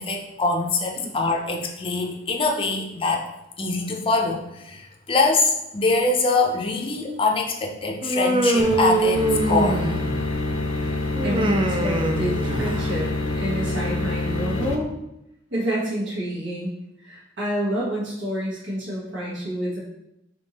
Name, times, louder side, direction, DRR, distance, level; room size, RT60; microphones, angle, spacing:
voice 1, 0.0-3.3 3.6-9.8, left 3 dB, 30° left, 1 dB, 0.5 m, -23 dB
Human voice, 8.0-10.3 11.2-13.0, right 2 dB, 25° right, 0.3 m, -23 dB
sound 1, 8.6-14.8, left 2 dB, 90° left, 0.6 m, -26 dB
voice 2, 11.2-14.9 15.5-16.7 17.0-19.8, equal, 70° right, -6 dB, 1.4 m, -28 dB
3.5 x 2.7 x 4.0 m, 0.83 s
head